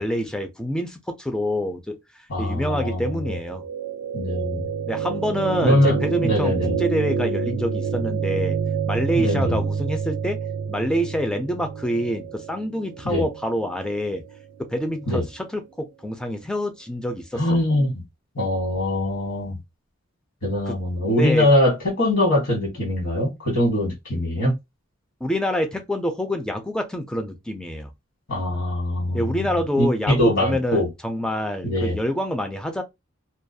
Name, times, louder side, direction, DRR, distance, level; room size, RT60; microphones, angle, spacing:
voice 1, 0.0-1.9 2.4-3.6 4.9-8.6 8.9-10.4 10.7-14.2 14.6-17.6 20.7-20.8 21.1-21.5 25.2-27.9 29.1-32.8, equal, 5° left, 0.3 m, -26 dB
voice 2, 2.3-3.3 4.1-4.6 5.6-6.0 6.2-6.8 9.1-9.6 13.0-13.3 15.1-15.2 17.3-17.9 18.3-19.5 20.4-24.5 28.3-30.9 31.6-32.0, left 1 dB, 65° left, 1.2 m, -22 dB
sound 1, 3.1-15.1, right 6 dB, 80° right, 0.3 m, -28 dB
2.3 x 2.2 x 2.6 m
head